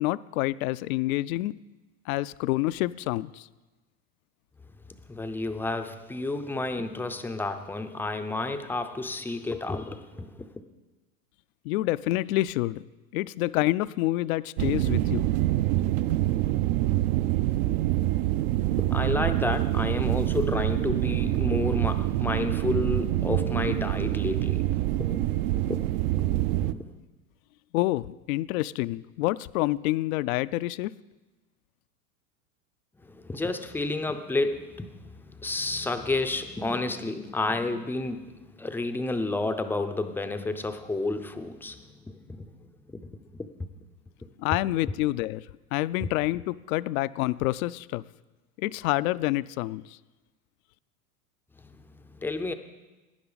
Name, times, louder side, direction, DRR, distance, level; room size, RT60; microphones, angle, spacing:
voice 1, 0.0-1.5 2.1-3.5 11.6-12.8 13.1-15.3 27.7-30.9 44.4-45.4 45.7-48.0 48.6-50.0, left 17 dB, 65° left, 0.5 m, -27 dB
voice 2, 4.9-10.5 18.8-26.9 33.0-42.6 42.9-43.1 43.4-43.7 46.0-46.1 51.6-52.5, left 2 dB, 5° left, 0.5 m, -31 dB
sound 1, 14.6-26.7, right 15 dB, 50° right, 0.5 m, -26 dB
17.0 x 10.0 x 3.9 m
hypercardioid pair, 115°, 45 cm